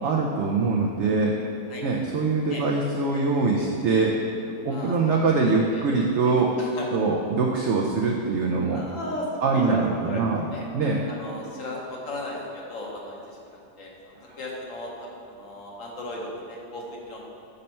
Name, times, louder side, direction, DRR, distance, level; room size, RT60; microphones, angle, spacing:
voice 1, 0.0-1.4 1.8-6.5 6.9-8.8 9.4-10.4 10.7-11.0 14.3-14.4, right 4 dB, 75° right, 0 dB, 0.6 m, -23 dB
voice 2, 4.7-7.0 8.7-10.2 10.5-10.7 11.1-17.2, left 1 dB, 60° left, -2 dB, 1.1 m, -37 dB
5.4 x 5.3 x 4.3 m, 2.6 s
omnidirectional pair, 1.7 m